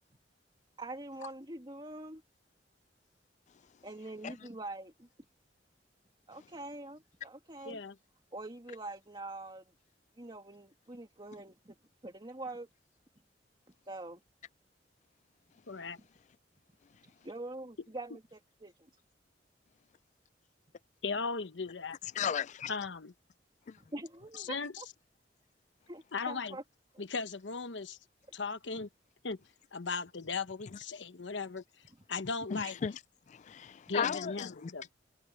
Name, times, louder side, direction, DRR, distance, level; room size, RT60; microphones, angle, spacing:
voice 1, 0.8-2.2 3.8-5.1 6.3-7.8 8.3-9.6 10.2-11.8 12.0-12.7 13.9-14.2 17.0-18.7 23.8-24.9 25.9-26.6 26.9-27.0 32.6-32.7, right 2 dB, 25° right, 2.4 m, -44 dB
voice 2, 15.7-16.0 21.0-22.0 22.7-23.1 24.4-24.8 26.1-26.6 27.0-28.0 28.3-28.9 29.2-29.4 29.7-31.6 32.1-32.8 33.9-34.9, left 4 dB, 90° left, 1.0 m, -37 dB
voice 3, 22.1-22.7 23.7-23.8 32.5-32.9 33.3-34.7, left 7 dB, 40° left, 0.3 m, -35 dB
head